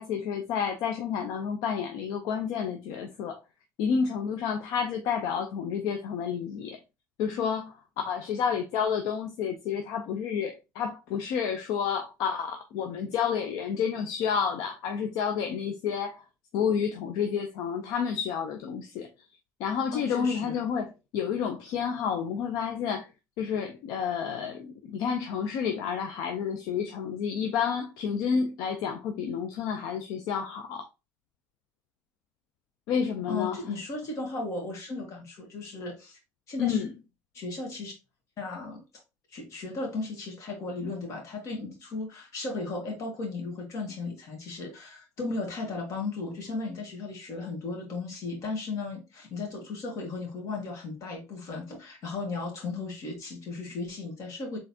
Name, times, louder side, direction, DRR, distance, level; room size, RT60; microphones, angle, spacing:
voice 1, 0.0-3.4 3.8-6.8 7.2-16.2 16.5-19.1 19.6-23.1 23.4-30.8 32.9-33.6 36.6-36.9, left 7 dB, 75° left, 0.6 m, -30 dB
voice 2, 19.9-20.6 33.3-36.2 36.5-36.8 37.3-37.9 38.4-38.8 39.3-54.6, left 3 dB, 55° left, 2.1 m, -35 dB
4.1 x 3.7 x 2.8 m
cardioid pair, 115°, 6 cm